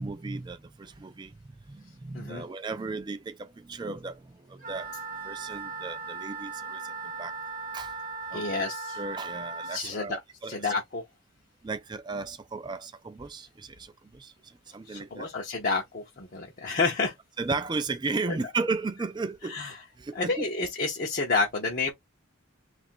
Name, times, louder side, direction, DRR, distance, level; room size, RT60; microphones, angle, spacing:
voice 1, 0.0-1.3 1.7-4.9 5.2-7.3 7.7-7.9 8.3-8.6 8.9-10.7 11.6-14.3 14.7-15.3 17.4-19.6 20.0-20.5, right 3 dB, 20° right, 0.3 m, -35 dB
voice 2, 2.1-2.5 8.3-9.0 9.7-10.2 10.5-11.0 14.9-17.1 19.5-19.7 20.1-21.9, left 3 dB, 40° left, 0.7 m, -29 dB
Wind instrument woodwind instrument, 4.6-9.8, right 4 dB, 40° right, 0.8 m, -38 dB
3.2 x 2.5 x 4.4 m
head